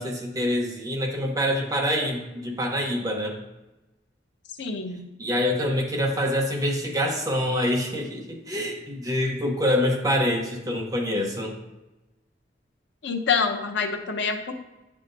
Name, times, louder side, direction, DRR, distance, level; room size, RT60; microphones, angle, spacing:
voice 1, 0.0-3.4 5.2-11.6, left 1 dB, 20° right, 0 dB, 0.8 m, -26 dB
voice 2, 4.6-5.0 13.0-14.5, left 5 dB, 80° left, 5 dB, 0.7 m, -26 dB
9.1 x 5.6 x 2.6 m, 1.0 s
head